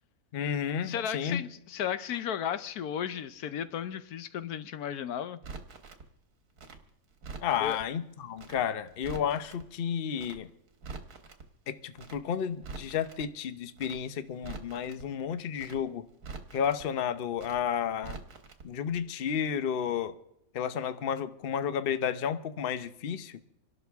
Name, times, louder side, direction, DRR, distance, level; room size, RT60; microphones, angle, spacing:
voice 1, 0.3-1.4 7.4-10.5 11.7-16.1 16.5-18.2 18.6-20.2 20.5-23.4, left 8 dB, 50° left, 0.8 m, -32 dB
voice 2, 0.8-5.4 7.6-7.8, left 9 dB, 80° left, 1.3 m, -34 dB
Crackle, 5.4-6.0 6.6-7.8 8.4-8.6 8.9-9.6 10.2-10.4 10.7-11.4 12.0-12.2 12.5-13.2 13.8-14.0 14.3-15.0 15.6-15.8 16.1-16.8 17.4-17.6 17.9-18.6 18.9-19.0, right 4 dB, 85° right, 2.0 m, -44 dB
26.5 x 12.0 x 3.5 m
omnidirectional pair, 1.6 m